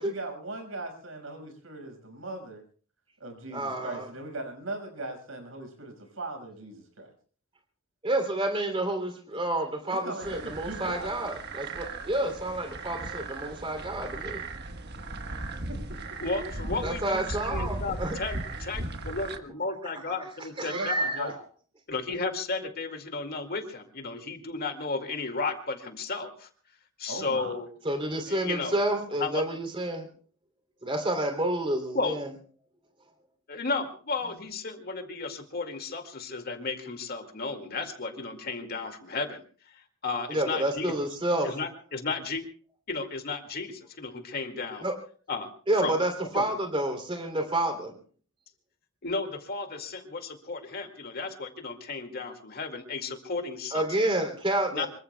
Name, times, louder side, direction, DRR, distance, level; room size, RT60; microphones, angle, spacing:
voice 1, 0.0-2.6 3.2-7.1 9.8-11.2 15.7-15.8 20.7-21.5 27.1-27.6, right 2 dB, 80° right, 4 dB, 5.5 m, -39 dB
voice 2, 3.5-4.1 8.0-14.4 16.8-18.1 20.6-21.2 27.8-30.1 30.8-32.3 40.3-41.5 44.8-45.0 45.7-47.9 53.7-54.9, right 1 dB, 25° right, 4 dB, 3.0 m, -29 dB
sound 1, 10.2-19.4, right 2 dB, 55° right, 1.4 m, -37 dB
voice 3, 16.2-21.3 21.9-26.5 27.0-27.7 28.3-28.8 29.2-29.4 31.9-32.2 33.5-39.4 39.7-40.9 41.4-42.4 42.9-44.8 45.3-45.5 45.8-46.0 46.3-46.5 49.0-53.8 54.7-54.9, left 3 dB, 50° left, 5 dB, 2.2 m, -33 dB
26.0 x 23.0 x 2.3 m, 0.42 s
head